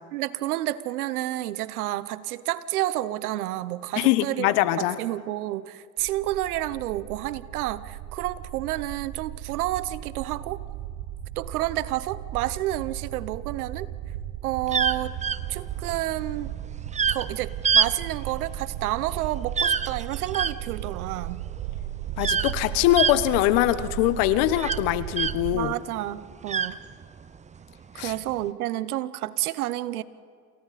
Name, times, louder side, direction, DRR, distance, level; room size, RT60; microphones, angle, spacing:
voice 1, 0.1-10.6 11.4-13.9 14.4-15.2 15.5-16.5 17.1-21.4 25.5-26.8 27.9-30.0, right 15 dB, 85° right, 17 dB, 1.1 m, -30 dB
voice 2, 4.0-4.9 22.2-25.7 28.0-28.1, left 14 dB, 65° left, 14 dB, 1.2 m, -22 dB
sound 1, 6.0-25.6, right 12 dB, 60° right, 1.3 m, -36 dB
sound 2, 14.7-25.7 26.0-27.4 28.1-28.4, right 6 dB, 15° right, 0.6 m, -27 dB
29.0 x 27.5 x 4.2 m, 2.1 s
supercardioid pair, 95°, 43 cm